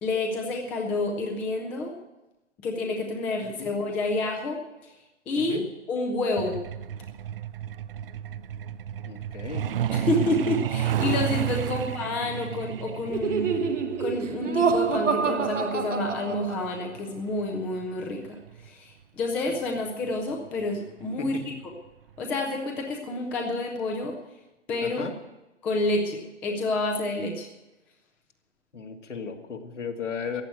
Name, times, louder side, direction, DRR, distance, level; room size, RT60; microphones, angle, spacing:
voice 1, 0.0-1.9 2.6-4.9 5.3-5.6 5.9-6.6 9.9-13.6 14.0-21.4 22.2-24.2 24.7-25.0 25.6-27.5, left 2 dB, 5° left, 1 dB, 0.4 m, -29 dB
Truck, 6.4-18.7 19.9-20.1 20.5-20.6 21.0-21.3 21.6-21.7 22.2-22.3, right 11 dB, 50° right, 0.6 m, -32 dB
voice 2, 9.0-9.7 11.7-11.8 21.2-21.6 24.8-25.1 28.7-30.4, left 6 dB, 80° left, 3 dB, 2.4 m, -35 dB
Laughter, 13.1-16.8, right 5 dB, 85° right, 1.5 m, -27 dB
14.5 x 9.3 x 8.0 m, 1.0 s
hypercardioid pair, 135°, 36 cm